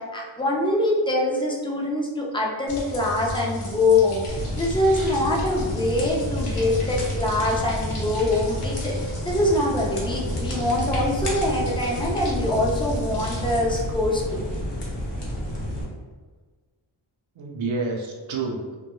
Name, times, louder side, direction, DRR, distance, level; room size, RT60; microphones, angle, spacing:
voice 1, 0.0-14.4, left 2 dB, 10° left, -2 dB, 0.3 m, -24 dB
sound 1, 2.7-13.6, left 1 dB, 85° left, 0.8 m, -34 dB
sound 2, 4.3-15.8, equal, 55° left, 0.8 m, -30 dB
voice 2, 4.7-5.2 17.4-18.8, right 3 dB, 70° right, 0 dB, 0.6 m, -30 dB
2.2 x 2.2 x 2.9 m, 1.4 s
wide cardioid pair, 100°, 49 cm